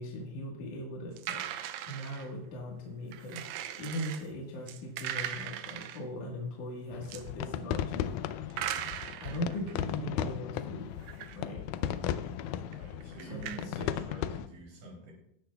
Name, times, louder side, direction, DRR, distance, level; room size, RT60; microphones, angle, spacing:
voice 1, 0.0-1.5 1.9-8.6 9.2-10.9 11.3-11.6 13.2-13.9, equal, 60° left, -2 dB, 2.8 m, -39 dB
sound 1, 1.2-2.3 3.1-4.3 4.7-6.0 7.0-7.3 8.5-9.8 11.0-11.4 11.8-11.9 12.7-13.7, right 11 dB, 80° right, 2.3 m, -39 dB
sound 2, 6.9-14.5, left 10 dB, 85° left, 1.8 m, -36 dB
voice 2, 12.7-15.1, right 2 dB, 65° right, -1 dB, 4.7 m, -47 dB
18.5 x 10.0 x 2.3 m, 0.76 s
omnidirectional pair, 4.2 m